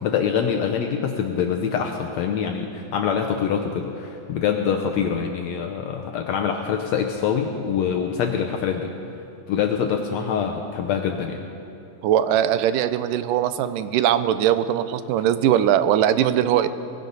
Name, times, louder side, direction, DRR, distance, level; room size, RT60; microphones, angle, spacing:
voice 1, 0.0-8.9 9.5-11.4, left 7 dB, 75° left, 3 dB, 1.7 m, -25 dB
voice 2, 12.0-16.7, right 11 dB, 80° right, 12 dB, 2.2 m, -20 dB
19.5 x 16.5 x 4.0 m, 2.7 s
omnidirectional pair, 3.8 m